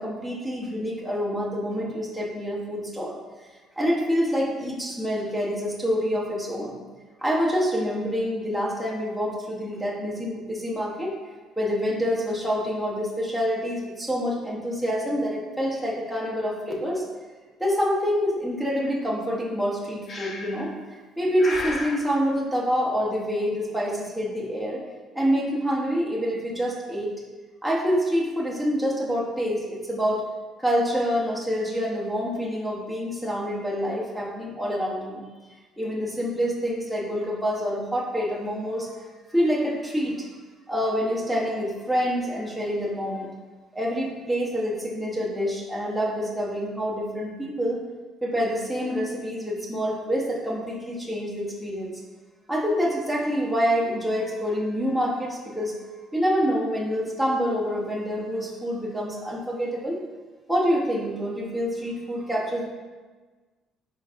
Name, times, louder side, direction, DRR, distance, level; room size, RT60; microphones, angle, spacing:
voice 1, 0.0-3.2 3.8-6.8 7.2-11.1 11.6-17.0 17.6-20.7 21.2-24.8 25.1-27.1 27.6-30.2 30.6-35.3 35.8-38.9 39.3-40.2 40.7-43.3 43.7-47.8 48.2-51.9 52.5-55.7 56.1-60.0 60.5-62.7, equal, ahead, -4 dB, 0.8 m, -26 dB
Breathing, 20.1-20.7 21.4-22.0, left 2 dB, 40° left, 0.6 m, -33 dB
4.5 x 3.9 x 2.4 m, 1.3 s
cardioid pair, 110°, 0 cm